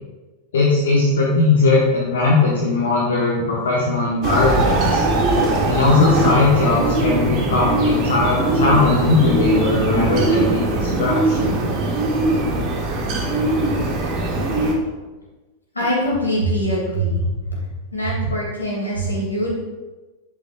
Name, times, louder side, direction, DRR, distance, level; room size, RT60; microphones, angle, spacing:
voice 1, 0.5-5.0 5.6-11.6, left 3 dB, 65° left, -4 dB, 1.5 m, -19 dB
sound 1, 4.2-14.7, right 2 dB, 40° right, 1.7 m, -20 dB
voice 2, 15.7-17.6 17.9-19.5, right 1 dB, 80° left, -4 dB, 3.1 m, -22 dB
10.5 x 8.7 x 2.6 m, 1.2 s
figure-of-eight pair, 90°, 0 cm